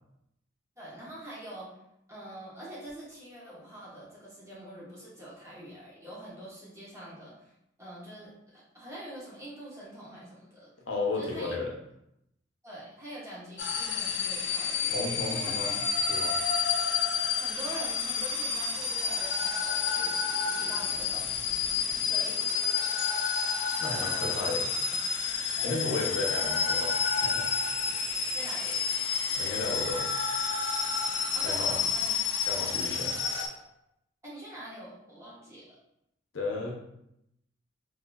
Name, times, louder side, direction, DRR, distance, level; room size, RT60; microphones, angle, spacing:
voice 1, 0.8-1.7 2.1-7.5 7.8-10.7 11.2-11.6 12.6-15.0 15.3-15.6 17.3-21.5 22.0-22.5 23.9-24.5 25.6-25.8 28.3-28.8 31.3-32.9 33.3-33.7 34.2-35.6, right 1 dB, 15° right, -8 dB, 1.1 m, -45 dB
voice 2, 10.9-11.7 14.9-15.8 16.1-16.3 23.8-24.7 25.6-27.4 29.3-30.1 31.4-31.8 32.4-33.1 36.3-36.7, left 2 dB, 90° left, -1 dB, 0.7 m, -33 dB
sound 1, 13.6-33.5, left 6 dB, 65° left, 0.5 m, -30 dB
3.9 x 2.7 x 2.3 m, 0.80 s
head